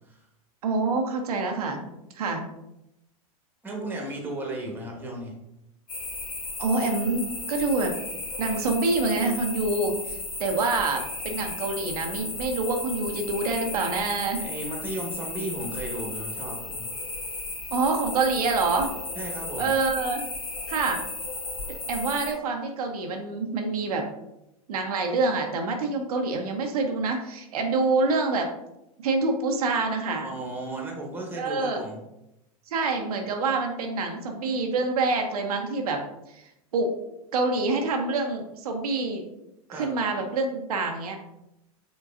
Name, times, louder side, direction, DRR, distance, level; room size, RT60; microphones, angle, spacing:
voice 1, 0.6-1.8 2.1-2.5 6.6-7.9 8.4-14.4 17.7-18.9 19.6-20.2 20.7-21.0 21.9-24.1 24.7-28.5 29.0-30.3 31.3-31.8 32.7-36.0 36.3-36.4 36.7-36.9 37.3-39.2 39.7-41.2, right 3 dB, 80° right, 3 dB, 0.7 m, -26 dB
voice 2, 3.6-5.3 14.4-16.9 19.1-19.7 30.2-32.0 39.7-39.9, right 1 dB, 10° right, 0 dB, 1.2 m, -35 dB
sound 1, 5.9-22.3, left 2 dB, 85° left, 1.6 m, -35 dB
5.1 x 3.8 x 2.5 m, 0.87 s
hypercardioid pair, 105°, 19 cm